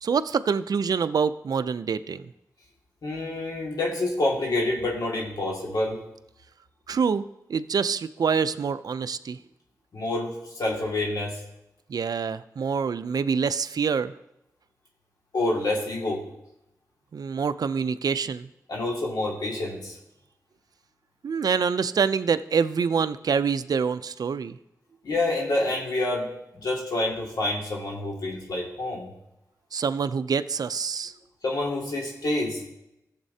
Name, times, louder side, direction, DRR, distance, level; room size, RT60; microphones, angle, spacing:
voice 1, 0.0-2.3 6.9-7.2 7.5-9.4 11.9-14.1 17.1-18.5 21.2-24.6 29.7-31.1, right 6 dB, 75° right, 13 dB, 0.4 m, -26 dB
voice 2, 3.0-6.0 9.9-11.4 15.3-16.2 18.7-20.0 25.0-26.3 26.5-29.1 31.4-32.6, left 2 dB, 85° left, -2 dB, 2.1 m, -27 dB
15.5 x 7.3 x 2.8 m, 0.86 s
cardioid pair, 50°, 7 cm